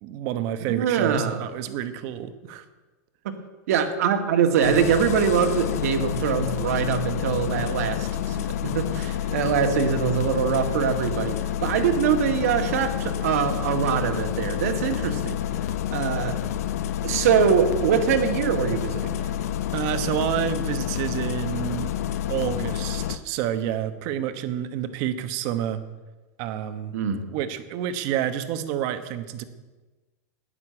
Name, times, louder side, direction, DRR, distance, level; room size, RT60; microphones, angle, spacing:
voice 1, 0.0-2.6 9.1-9.2 19.7-21.9 22.3-25.8 26.4-27.0 27.3-29.4, right 10 dB, 35° right, 10 dB, 1.1 m, -29 dB
voice 2, 0.7-1.4 3.7-15.4 15.9-16.4 17.0-19.3 26.9-27.2, right 7 dB, 65° right, 6 dB, 1.9 m, -23 dB
Engine starting, 4.6-23.2, left 10 dB, 65° left, 0.8 m, -29 dB
11.0 x 10.0 x 8.8 m, 1.2 s
supercardioid pair, 175°, 9 cm